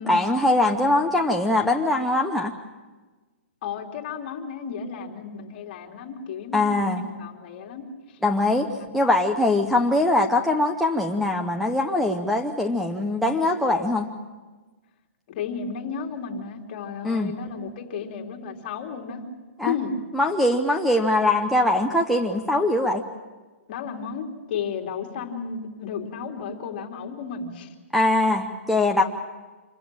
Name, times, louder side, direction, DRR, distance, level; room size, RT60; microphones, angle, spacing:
voice 1, 0.1-2.5 6.5-7.0 8.2-8.7 8.9-14.1 17.0-17.3 19.6-19.7 20.1-23.0 27.9-29.0, left 2 dB, ahead, 0 dB, 0.7 m, -22 dB
voice 2, 3.6-8.2 8.8-8.9 15.3-19.3 19.6-19.9 23.7-27.7, left 6 dB, 40° left, 1 dB, 2.9 m, -33 dB
26.5 x 14.5 x 8.9 m, 1.3 s
hypercardioid pair, 160°, 7 cm